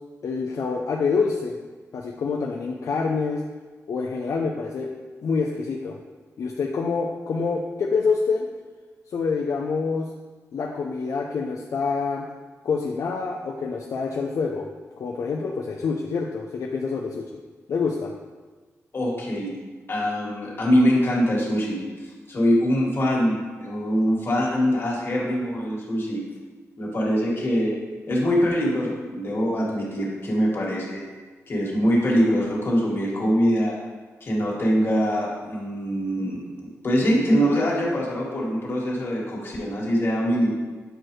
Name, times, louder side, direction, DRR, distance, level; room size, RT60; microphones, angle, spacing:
voice 1, 0.2-1.5 1.9-3.4 3.9-4.9 5.2-6.0 6.4-8.5 9.1-10.1 10.5-12.2 12.6-14.7 15.0-17.3 17.7-18.1, left 4 dB, 65° left, 0 dB, 0.5 m, -26 dB
voice 2, 18.9-19.5 19.9-26.2 26.8-27.7 28.1-31.0 31.5-33.7 34.2-40.5, equal, 40° left, -4 dB, 1.8 m, -23 dB
7.6 x 4.5 x 3.1 m, 1.4 s
wide cardioid pair, 120°, 6 cm